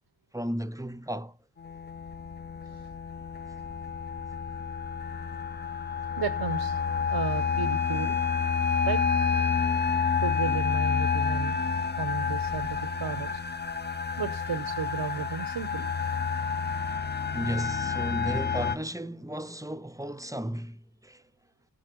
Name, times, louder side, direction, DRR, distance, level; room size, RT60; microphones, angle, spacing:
voice 1, 0.3-1.3 17.3-20.8 21.0-21.2, equal, 10° right, 0.7 m, -34 dB
sound 1, 1.6-18.8, left 6 dB, 25° left, 0.7 m, -29 dB
voice 2, 6.2-6.8 7.1-8.2 8.8-9.2 10.2-11.6 12.0-13.4 14.2-15.9, right 6 dB, 80° right, 1.1 m, -34 dB
16.0 x 5.4 x 5.4 m
cardioid pair, 40°, 41 cm